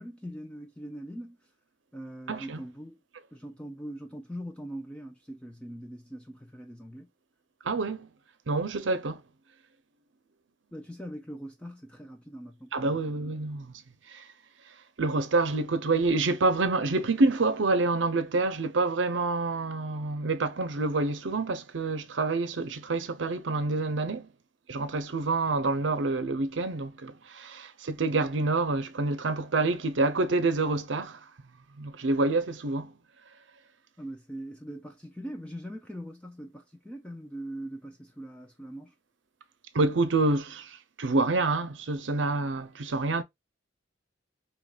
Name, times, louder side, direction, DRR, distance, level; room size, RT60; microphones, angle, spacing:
voice 1, 0.0-1.4 1.9-3.0 3.3-7.1 10.7-13.1 34.0-38.9, equal, 5° left, 0.5 m, -41 dB
voice 2, 2.3-2.6 7.6-8.1 8.5-9.2 12.7-13.7 14.1-14.3 15.0-24.3 24.7-31.2 31.8-32.9 39.7-43.2, right 3 dB, 75° right, 0.7 m, -27 dB
5.0 x 3.0 x 2.4 m
head